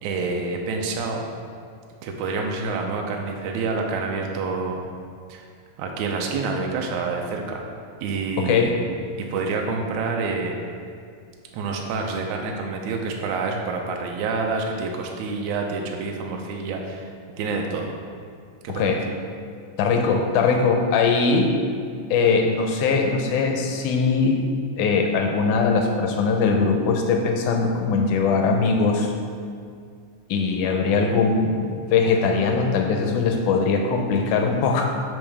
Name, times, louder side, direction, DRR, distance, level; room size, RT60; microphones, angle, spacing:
voice 1, 0.0-1.3 2.0-4.8 5.3-5.5 5.8-7.6 8.0-8.7 9.2-10.6 11.5-17.1 17.4-18.0 18.6-19.0, right 4 dB, 75° right, 1 dB, 1.9 m, -27 dB
voice 2, 8.4-8.8 18.8-19.0 19.8-21.6 22.1-24.4 24.8-29.1 30.3-34.9, left 4 dB, 75° left, 3 dB, 2.1 m, -21 dB
7.1 x 7.1 x 3.4 m, 2.2 s
omnidirectional pair, 3.9 m